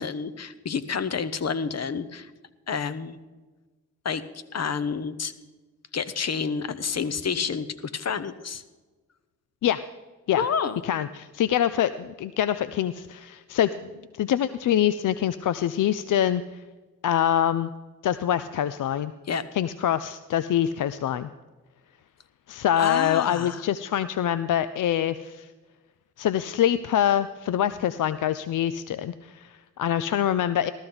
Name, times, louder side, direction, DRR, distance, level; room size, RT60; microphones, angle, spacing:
voice 1, 0.0-2.3 2.7-3.2 4.0-4.2 4.5-5.3 5.9-8.6 10.4-10.8 19.3-19.4 22.8-23.6, left 6 dB, 45° left, 13 dB, 0.9 m, -29 dB
voice 2, 10.8-13.7 14.2-16.6 17.0-17.7 18.0-19.1 19.5-21.3 22.5-25.5 26.2-30.7, left 10 dB, 60° left, 14 dB, 0.5 m, -25 dB
14.0 x 13.0 x 3.9 m, 1.3 s
supercardioid pair, 50°, 36 cm